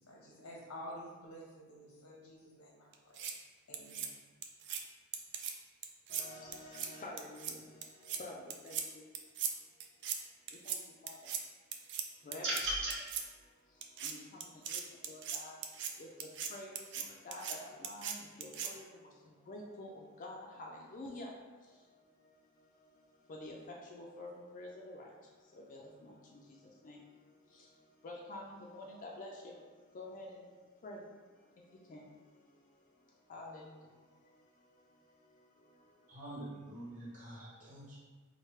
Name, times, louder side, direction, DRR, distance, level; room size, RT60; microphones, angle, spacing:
voice 1, 0.0-3.2 3.7-4.2, equal, 85° left, -3 dB, 0.9 m, -50 dB
sound 1, 2.9-3.3 3.7-4.1 4.4-4.8 5.1-5.5 5.8-6.2 6.5-6.9 7.2-7.5 7.8-8.2 8.5-8.8 9.1-9.5 9.8-10.2 10.5-10.8 11.1-11.4 11.7-12.0 12.3-12.6 12.9-13.2 13.8-14.1 14.4-15.9 16.2-16.5 16.8-17.0 17.3-17.6 17.8-18.1 18.4-18.7, right 8 dB, 55° right, 0.3 m, -39 dB
voice 2, 6.1-9.4 10.0-10.1 10.5-36.2, left 1 dB, 40° left, -2 dB, 0.4 m, -51 dB
sound 2, 12.4-13.0, right 1 dB, 75° right, 1.4 m, -34 dB
voice 3, 36.1-38.0, right 1 dB, 35° right, -7 dB, 1.2 m, -47 dB
3.1 x 2.1 x 4.2 m, 1.4 s
head